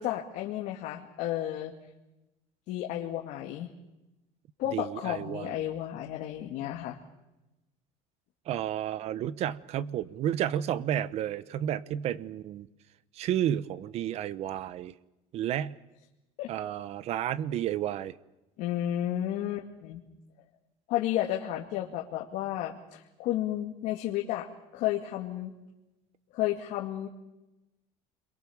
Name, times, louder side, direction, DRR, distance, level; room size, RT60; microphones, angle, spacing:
voice 1, 0.0-1.7 2.7-3.7 4.6-7.0 16.4-16.5 18.6-20.0 20.9-24.5 24.7-25.5 26.3-27.1, left 13 dB, 65° left, 1 dB, 2.2 m, -32 dB
voice 2, 4.7-5.6 8.5-12.7 13.1-14.9 15.3-15.8 16.5-18.2, right 11 dB, 50° right, 17 dB, 1.0 m, -31 dB
30.0 x 23.0 x 7.2 m, 0.98 s
cardioid pair, 140°, 14 cm